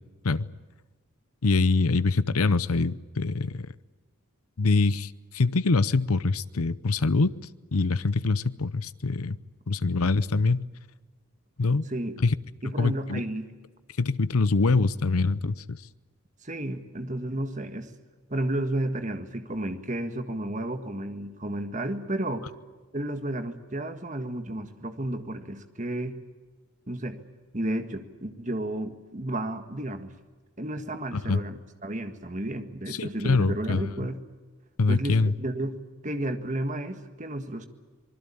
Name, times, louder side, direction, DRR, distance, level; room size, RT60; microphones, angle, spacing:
voice 1, 1.4-3.7 4.6-7.3 7.7-9.4 9.7-10.7 11.6-11.8 12.2-12.3 12.8-13.2 14.0-15.8 31.1-31.4 32.9-33.8 34.8-35.3, left 3 dB, 85° left, 17 dB, 0.8 m, -24 dB
voice 2, 12.6-13.5 16.4-17.9 18.3-22.5 22.9-26.2 26.9-27.2 27.5-30.1 30.6-34.2 34.9-35.7 36.0-37.7, right 1 dB, 35° right, 8 dB, 1.7 m, -32 dB
26.0 x 20.5 x 8.7 m, 1.4 s
head